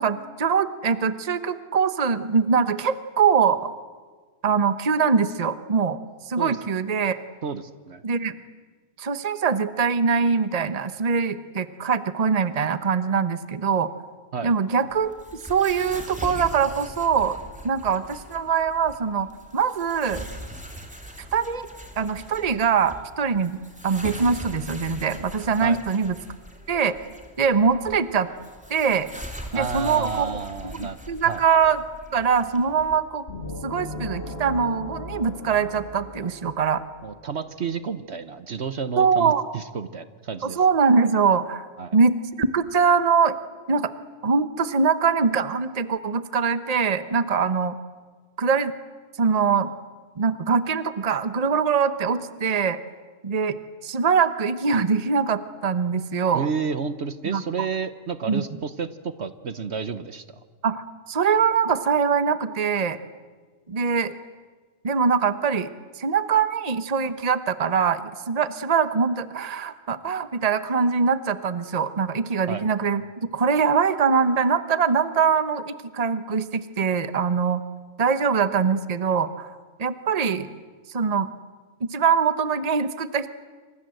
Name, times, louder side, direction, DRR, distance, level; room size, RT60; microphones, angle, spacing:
voice 1, 0.0-3.7 4.4-6.0 6.3-7.2 8.0-8.3 9.0-13.9 14.4-15.1 15.5-17.4 17.6-19.3 19.5-20.3 21.3-21.7 22.0-23.6 23.8-26.2 26.7-27.0 27.4-28.3 28.7-29.1 29.5-30.4 30.8-31.8 32.1-33.2 33.6-36.8 39.0-39.4 40.4-41.7 41.9-43.3 43.7-43.9 44.2-47.8 48.4-48.7 49.2-49.7 50.2-52.8 53.2-53.6 53.8-56.5 57.2-57.7 58.3-58.4 60.6-63.0 63.7-64.1 64.8-65.7 66.0-77.6 78.0-79.5 79.8-80.5 80.9-81.3 81.8-83.3, right 6 dB, 30° right, 12 dB, 1.1 m, -23 dB
voice 2, 7.4-8.0 14.3-14.5 25.6-25.8 29.5-31.0 31.2-31.4 37.0-40.6 41.8-42.0 56.3-60.4 72.5-72.6, right 5 dB, 55° right, 12 dB, 1.2 m, -31 dB
sound 1, 14.9-33.0, right 1 dB, 5° right, 2.9 m, -41 dB
sound 2, 33.3-37.0, left 2 dB, 50° left, 3.1 m, -36 dB
27.5 x 26.0 x 7.8 m, 1.4 s
omnidirectional pair, 1.3 m